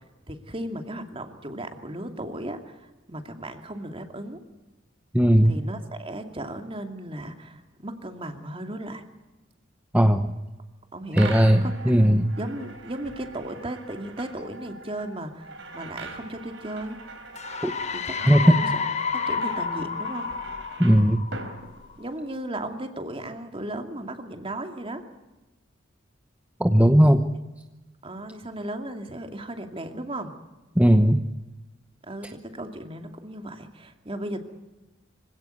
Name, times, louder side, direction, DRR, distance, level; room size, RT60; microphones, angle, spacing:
voice 1, 0.3-4.4 5.4-9.0 10.9-11.3 11.6-12.0 12.4-17.0 17.9-18.8 19.1-20.3 22.0-25.0 28.0-30.3 32.1-34.4, right 1 dB, 30° right, 6 dB, 2.5 m, -36 dB
voice 2, 5.1-5.5 9.9-10.3 11.1-12.3 17.6-17.7 18.3-18.6 20.8-21.2 26.6-27.2 30.8-31.2, equal, 10° right, 7 dB, 0.9 m, -17 dB
sound 1, 11.1-22.4, right 3 dB, 65° right, 4.1 m, -42 dB
sound 2, 17.4-21.9, left 5 dB, 35° left, 1.0 m, -30 dB
25.5 x 17.0 x 9.4 m, 1.1 s
head